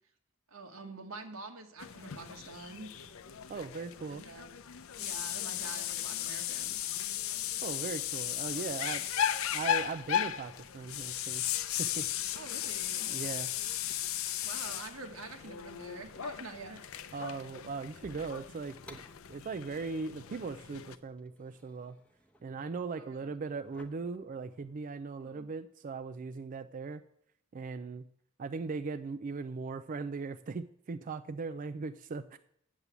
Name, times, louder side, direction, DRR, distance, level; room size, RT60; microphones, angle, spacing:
voice 1, 0.5-2.9 4.1-4.5 5.0-6.8 12.3-13.1 14.4-16.8 17.1-17.2 22.9-23.3 25.2-25.5, right 3 dB, 85° right, 4 dB, 1.6 m, -46 dB
sound 1, 1.8-21.0, left 10 dB, 75° left, 0.6 m, -36 dB
voice 2, 3.5-4.2 7.6-9.1 9.5-11.4 11.8-12.1 13.1-13.5 17.1-19.0 19.3-22.0 22.4-27.0 27.5-28.0 28.4-32.4, right 4 dB, 40° right, 11 dB, 0.4 m, -39 dB
sound 2, 18.0-24.8, left 1 dB, 5° left, 1.0 m, -60 dB
8.1 x 7.4 x 8.1 m, 0.73 s
head